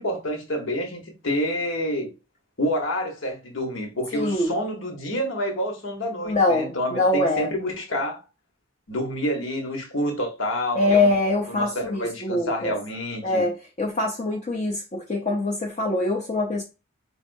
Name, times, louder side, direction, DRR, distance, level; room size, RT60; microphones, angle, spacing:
voice 1, 0.0-2.1 2.6-8.2 8.9-11.1 11.5-13.5, equal, 75° left, 1.2 m, -28 dB
voice 2, 4.1-4.5 6.2-7.5 10.7-12.7 13.2-16.6, left 2 dB, 35° left, 0.5 m, -24 dB
4.1 x 3.4 x 2.6 m
head